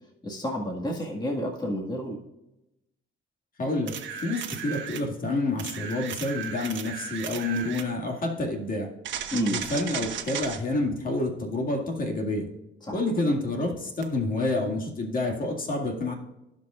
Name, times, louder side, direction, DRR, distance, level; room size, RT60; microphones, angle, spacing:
voice 1, 0.2-2.2 9.3-9.6 12.8-13.0, equal, 20° left, -1 dB, 1.8 m, -30 dB
voice 2, 3.6-3.9 4.2-8.9 9.5-12.5 12.9-16.1, left 2 dB, 45° left, 0 dB, 2.2 m, -28 dB
sound 1, 3.9-5.1 5.6-7.9 9.0-10.6 14.0-14.1, right 8 dB, 70° right, 1.3 m, -35 dB
16.0 x 5.3 x 2.5 m, 0.91 s
cardioid pair, 90°, 20 cm